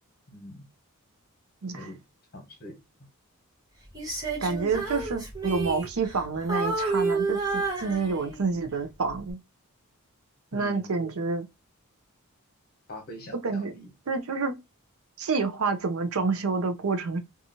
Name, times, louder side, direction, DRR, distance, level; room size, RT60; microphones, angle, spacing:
voice 1, 0.3-0.6 1.7-2.0 2.3-2.7 10.5-10.9 12.9-13.9, equal, 45° left, 1.2 m, -42 dB
Female singing, 3.9-6.2 6.5-8.5 9.1-9.3, right 4 dB, 15° right, 0.8 m, -30 dB
voice 2, 4.4-9.4 10.5-11.5 13.4-13.7 14.1-14.5 15.2-17.2, right 4 dB, 70° right, 0.5 m, -28 dB
2.8 x 2.4 x 2.6 m
head